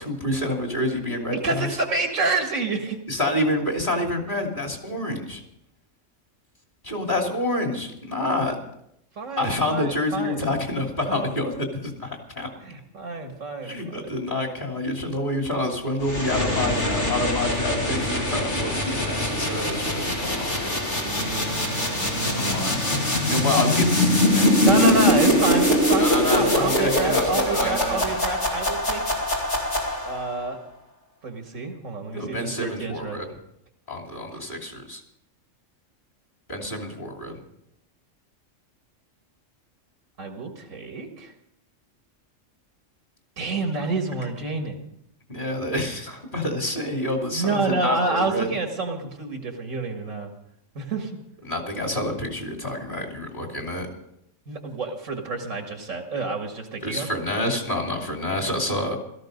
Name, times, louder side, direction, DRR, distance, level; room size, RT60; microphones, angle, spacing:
voice 1, 0.0-1.7 3.1-5.4 6.8-8.6 9.4-12.5 13.6-20.8 22.5-22.7 23.2-25.0 26.0-28.1 32.1-33.3 33.9-35.0 36.5-37.4 45.3-48.5 51.4-53.9 56.8-59.0, left 1 dB, 40° left, 2 dB, 3.2 m, -28 dB
voice 2, 1.3-3.0 9.2-10.5 11.1-11.3 12.6-14.5 21.0-23.1 24.6-29.0 30.1-30.6 31.2-33.2 40.2-41.3 43.4-44.8 47.3-50.3 50.8-51.1 54.5-57.1 58.7-58.8, right 3 dB, 85° right, 3 dB, 2.3 m, -28 dB
sound 1, 16.0-30.3, left 1 dB, 60° left, 2.8 m, -23 dB
17.0 x 14.0 x 5.3 m, 0.76 s
omnidirectional pair, 1.3 m